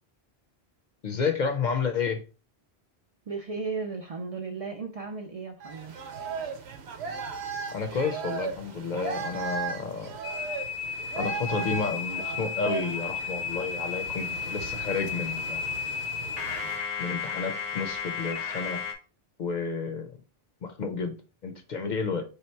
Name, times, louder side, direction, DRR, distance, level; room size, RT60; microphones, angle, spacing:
voice 1, 1.0-2.2 7.7-10.1 11.2-15.6 17.0-18.8 19.4-20.1 20.6-21.1 21.4-22.2, left 5 dB, 55° left, 0.6 m, -31 dB
voice 2, 3.3-5.9 21.8-22.0, right 4 dB, 50° right, 0.5 m, -35 dB
sound 1, 5.6-16.8, right 5 dB, 85° right, 1.0 m, -37 dB
sound 2, 10.2-18.9, left 6 dB, 80° left, 0.9 m, -33 dB
3.3 x 2.9 x 4.4 m
omnidirectional pair, 1.1 m